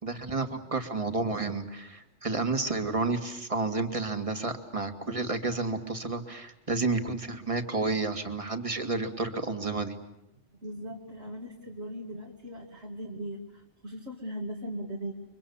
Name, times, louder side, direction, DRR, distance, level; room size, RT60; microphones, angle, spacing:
voice 1, 0.0-10.0, right 3 dB, 25° right, 6 dB, 2.1 m, -31 dB
voice 2, 10.6-15.1, equal, 60° right, -3 dB, 2.9 m, -39 dB
30.0 x 24.5 x 7.1 m, 0.80 s
omnidirectional pair, 1.3 m